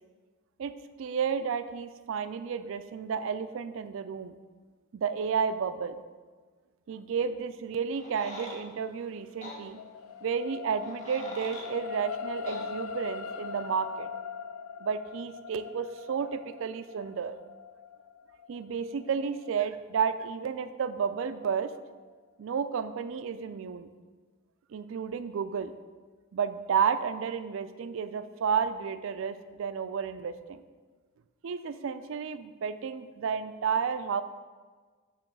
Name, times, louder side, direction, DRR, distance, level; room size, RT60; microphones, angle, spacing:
voice 1, 1.0-4.3 4.9-6.0 6.9-9.8 10.2-14.1 14.8-17.4 18.5-21.7 22.4-23.9 24.7-25.7 26.3-30.6 31.4-34.2, right 6 dB, 65° right, 11 dB, 0.3 m, -32 dB
sound 1, 7.9-8.6 9.4-9.6 10.8-11.7 12.5-12.6, left 1 dB, 35° left, 1.2 m, -42 dB
sound 2, 8.9-21.5 22.0-22.1, left 6 dB, 90° left, 0.4 m, -41 dB
6.9 x 3.1 x 5.9 m, 1.4 s
head